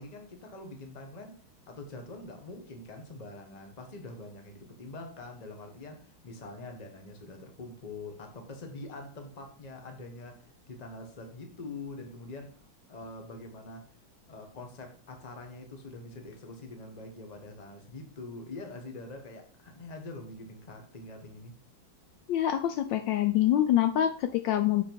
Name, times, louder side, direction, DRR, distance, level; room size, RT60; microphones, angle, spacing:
voice 1, 0.0-1.4 1.7-13.9 14.3-21.6, left 2 dB, 25° left, 1.0 m, -44 dB
voice 2, 22.3-24.8, left 11 dB, 75° left, 1.2 m, -25 dB
6.8 x 5.3 x 4.6 m
omnidirectional pair, 2.2 m